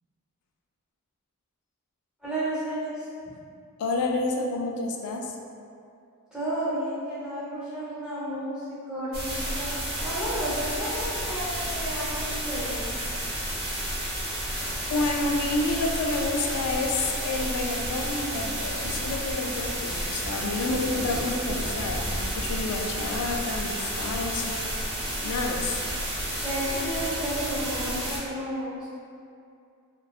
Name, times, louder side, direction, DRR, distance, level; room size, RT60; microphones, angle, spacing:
voice 1, 2.2-3.1 6.3-9.7 10.0-12.9 26.3-29.0, right 1 dB, 5° right, -12 dB, 0.6 m, -32 dB
voice 2, 3.8-5.3 14.9-24.7 25.2-25.8, left 2 dB, 85° left, 3 dB, 0.3 m, -29 dB
sound 1, 9.1-28.2, right 1 dB, 60° right, 0.8 m, -31 dB
2.6 x 2.2 x 2.3 m, 2.4 s
head